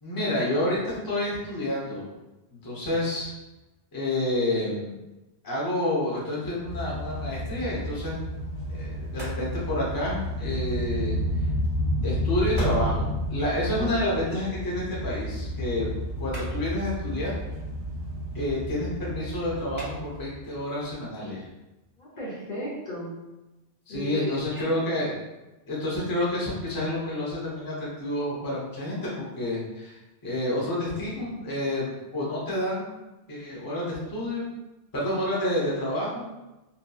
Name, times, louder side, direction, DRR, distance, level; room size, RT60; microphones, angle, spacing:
voice 1, 0.0-2.1 2.5-3.3 3.9-5.0 5.4-8.2 8.7-11.2 12.0-15.9 16.2-17.4 18.3-21.5 23.9-25.2 25.7-32.9 33.3-34.5 34.9-36.2, left 1 dB, 25° left, -6 dB, 0.7 m, -29 dB
sound 1, 6.7-20.5, equal, 90° left, 1.0 m, -31 dB
sound 2, 8.6-22.1, equal, 25° right, 1.1 m, -48 dB
voice 2, 22.0-23.1 23.9-24.7, left 1 dB, 50° left, -7 dB, 0.8 m, -35 dB
2.8 x 2.6 x 2.3 m, 1.0 s
omnidirectional pair, 1.1 m